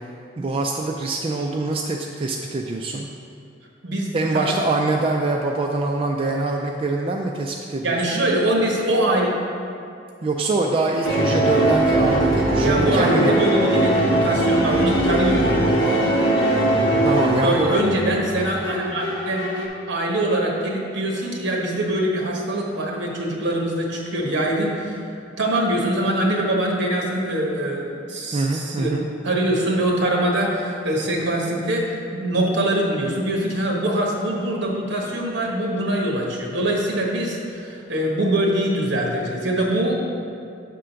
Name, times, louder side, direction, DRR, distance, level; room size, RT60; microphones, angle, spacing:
voice 1, 0.4-3.1 4.1-8.2 10.2-13.3 17.0-17.7 28.3-29.1, right 3 dB, 30° right, 0 dB, 0.3 m, -24 dB
voice 2, 3.8-4.5 7.8-9.3 12.6-15.7 17.4-19.5 19.9-25.0 25.4-28.9 29.2-40.2, right 1 dB, 65° right, -1 dB, 1.1 m, -23 dB
sound 1, 11.0-19.7, right 1 dB, 70° left, 1.0 m, -20 dB
7.5 x 3.8 x 5.7 m, 2.5 s
head